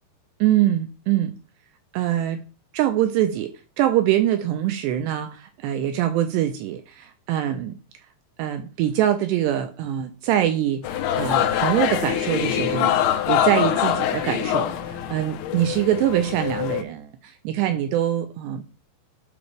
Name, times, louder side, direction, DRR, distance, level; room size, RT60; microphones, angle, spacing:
voice 1, 0.4-1.3 1.9-2.4 2.7-7.7 8.4-18.7, right 12 dB, 85° right, 8 dB, 2.6 m, -24 dB
sound 1, 10.8-16.8, left 11 dB, 80° left, 3.1 m, -24 dB
12.0 x 4.9 x 3.3 m, 0.33 s
omnidirectional pair, 5.4 m